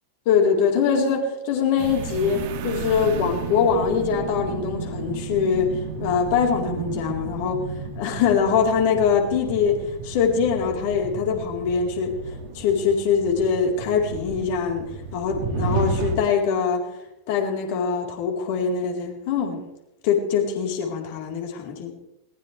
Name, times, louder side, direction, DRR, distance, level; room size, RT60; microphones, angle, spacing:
voice 1, 0.3-7.6 8.0-12.2 12.5-16.8 17.3-19.6 20.0-21.9, left 6 dB, 50° left, 1 dB, 4.0 m, -23 dB
sound 1, 1.8-16.1, right 4 dB, 50° right, 2.6 m, -32 dB
21.0 x 20.0 x 3.4 m, 0.93 s
figure-of-eight pair, 90°, 0 cm